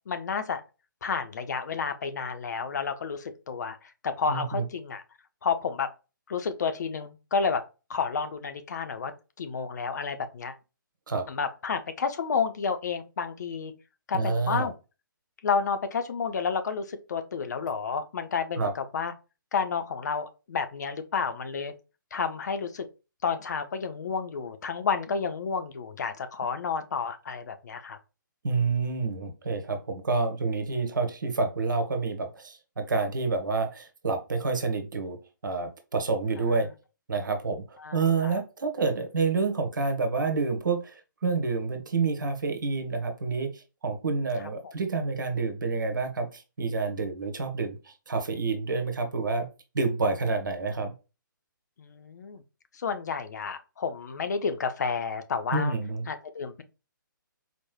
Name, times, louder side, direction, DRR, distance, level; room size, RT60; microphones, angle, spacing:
voice 1, 0.1-0.6 1.0-5.0 5.4-5.9 6.3-7.6 7.9-9.1 9.4-10.6 11.3-13.7 14.1-14.7 15.4-19.1 19.5-21.7 22.1-22.9 23.2-28.0 36.4-36.6 37.8-38.4 44.6-44.7 51.8-52.4 52.7-55.7 56.1-56.6, left 5 dB, 55° left, 0.6 m, -30 dB
voice 2, 4.3-4.6 11.1-11.2 14.1-14.7 18.6-18.7 28.4-35.2 35.4-36.7 37.1-49.5 49.7-50.9 55.5-56.1, right 4 dB, 65° right, 1.1 m, -28 dB
4.3 x 3.1 x 2.2 m
figure-of-eight pair, 135°, 11 cm